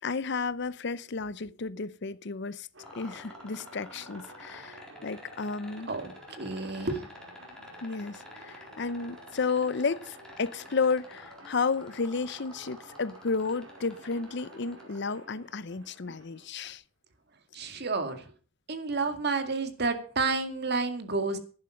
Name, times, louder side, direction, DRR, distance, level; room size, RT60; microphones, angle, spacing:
voice 1, 0.0-2.7 2.9-5.9 7.8-16.8, left 4 dB, 60° left, 0.7 m, -32 dB
sound 1, 2.7-16.5, right 2 dB, 85° right, 4.8 m, -52 dB
sound 2, 2.8-15.0 16.6-16.7, left 1 dB, 5° left, 4.0 m, -49 dB
voice 2, 5.9-7.1 17.5-18.3 18.7-21.4, right 3 dB, 55° right, 2.1 m, -30 dB
11.0 x 11.0 x 6.5 m
head